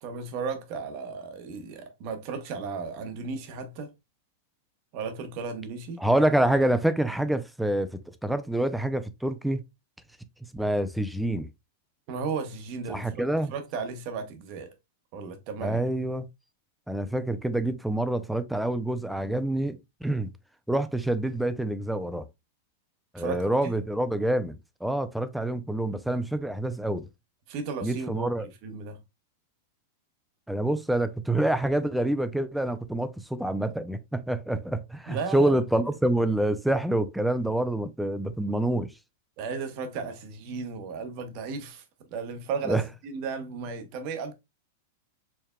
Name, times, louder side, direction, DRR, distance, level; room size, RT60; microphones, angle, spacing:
voice 1, 0.0-3.9 4.9-6.0 12.1-14.7 15.1-15.8 23.2-23.7 27.5-29.0 35.1-35.9 39.4-44.3, right 5 dB, 40° right, 0.9 m, -35 dB
voice 2, 6.0-9.6 10.5-11.5 12.9-13.5 15.6-16.3 16.9-20.3 20.7-22.2 23.1-27.1 27.8-28.5 30.5-38.9 42.7-42.8, right 1 dB, ahead, 0.4 m, -27 dB
4.6 x 3.4 x 2.2 m
supercardioid pair, 155°, 0 cm